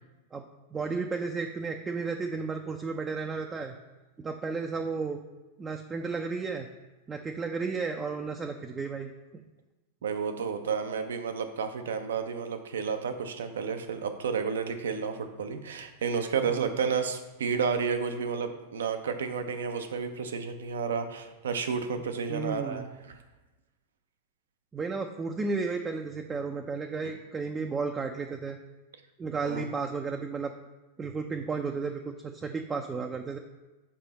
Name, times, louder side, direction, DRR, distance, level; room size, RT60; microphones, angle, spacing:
voice 1, 0.7-3.8 4.2-5.2 5.6-6.7 7.1-9.1 16.5-16.7 22.3-22.9 24.7-28.6 29.2-30.5 31.0-33.4, right 4 dB, 20° right, 3 dB, 0.5 m, -33 dB
voice 2, 10.0-23.2 29.4-29.7, right 6 dB, 80° right, 8 dB, 0.6 m, -31 dB
5.7 x 4.8 x 4.1 m, 1.1 s
hypercardioid pair, 105°, 0 cm